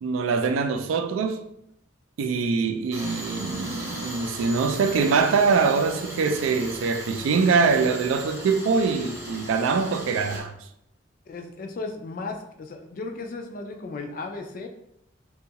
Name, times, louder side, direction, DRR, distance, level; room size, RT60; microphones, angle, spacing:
voice 1, 0.0-1.5 2.2-10.5, right 5 dB, 90° right, 0.3 m, -23 dB
Tools, 2.9-10.4, equal, 15° right, 0.6 m, -38 dB
voice 2, 11.3-14.7, left 3 dB, 45° left, 0.3 m, -35 dB
2.7 x 2.3 x 2.8 m
head